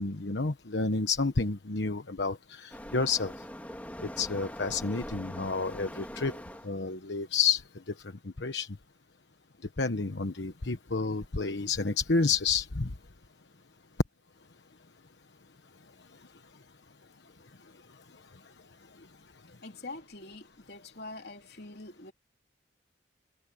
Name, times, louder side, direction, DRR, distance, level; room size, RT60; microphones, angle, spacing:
voice 1, 0.0-3.3 4.0-6.4 6.6-7.6 8.4-8.7 9.8-12.9, left 4 dB, 85° left, 1.1 m, -30 dB
Waves surf, 2.7-6.7, equal, 10° left, 2.9 m, -42 dB
voice 2, 19.6-22.1, left 2 dB, 65° left, 3.5 m, -44 dB
head